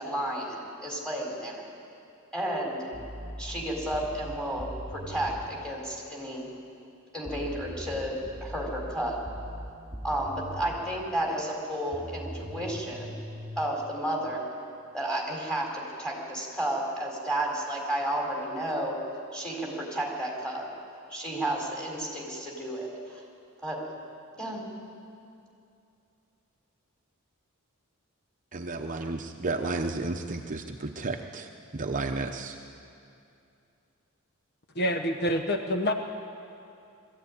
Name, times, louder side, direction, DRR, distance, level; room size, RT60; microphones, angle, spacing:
voice 1, 0.0-1.6 2.3-2.9 3.4-6.5 7.1-8.1 8.4-9.2 10.0-13.1 13.6-14.4 14.9-18.9 19.3-20.7 21.1-23.2 23.6-23.8 24.4-24.6, right 1 dB, 5° left, -1 dB, 4.3 m, -32 dB
sound 1, 2.9-5.5 7.3-10.9 11.9-13.6, equal, 20° left, 2.5 m, -40 dB
voice 2, 28.5-32.6, right 3 dB, 35° right, 4 dB, 0.8 m, -32 dB
voice 3, 34.7-35.9, equal, 50° left, 5 dB, 1.0 m, -27 dB
21.0 x 14.5 x 9.8 m, 2.6 s
head